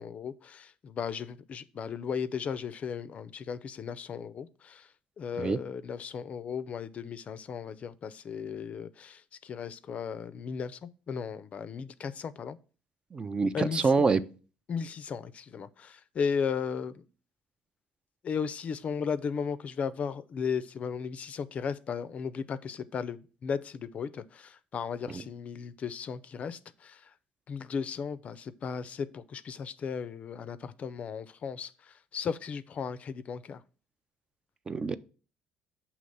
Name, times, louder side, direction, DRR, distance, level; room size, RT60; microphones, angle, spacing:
voice 1, 0.0-4.9 5.2-12.6 13.5-13.9 14.7-17.0 18.2-27.1 27.5-33.6, left 6 dB, 45° left, 0.4 m, -36 dB
voice 2, 13.1-14.2 25.1-25.2 34.7-35.0, right 4 dB, 30° right, 0.4 m, -26 dB
6.4 x 2.9 x 5.4 m
cardioid pair, 105°, 3 cm